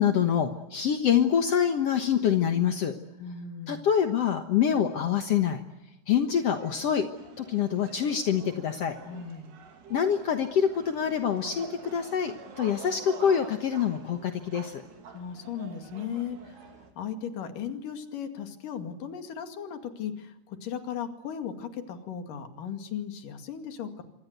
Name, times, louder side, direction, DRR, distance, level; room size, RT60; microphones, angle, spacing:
voice 1, 0.0-2.9 3.7-5.6 6.1-7.1 7.4-8.9 9.9-14.8, left 8 dB, 75° left, 6 dB, 1.4 m, -25 dB
voice 2, 3.2-3.8 9.1-9.5 15.1-16.5 17.0-24.0, left 8 dB, 55° left, 6 dB, 3.6 m, -36 dB
sound 1, 6.5-16.9, right 6 dB, 75° right, 5.0 m, -47 dB
27.5 x 25.0 x 8.2 m, 0.91 s
omnidirectional pair, 4.8 m